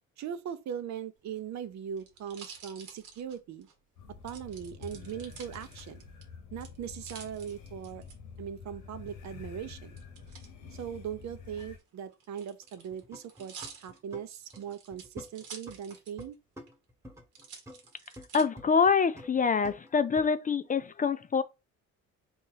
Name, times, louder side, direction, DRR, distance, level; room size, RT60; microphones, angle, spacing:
voice 1, 0.2-3.7 4.2-6.0 6.5-8.0 8.4-10.0 10.7-16.4, right 8 dB, 65° right, 0.7 m, -40 dB
sound 1, 1.2-3.7 4.3-6.2 6.6-8.1 10.0-10.5 11.4-16.3 16.7-16.8 17.3-18.5 19.1-19.6, right 6 dB, 85° right, 1.3 m, -49 dB
sound 2, 4.0-11.8, left 6 dB, 90° left, 1.2 m, -48 dB
sound 3, 12.6-14.3 14.5-16.3 16.6-18.3 18.6-20.3, left 1 dB, 10° right, 1.2 m, -48 dB
voice 2, 18.3-21.4, left 5 dB, 30° left, 0.4 m, -25 dB
3.9 x 3.0 x 3.8 m
cardioid pair, 90°, 30 cm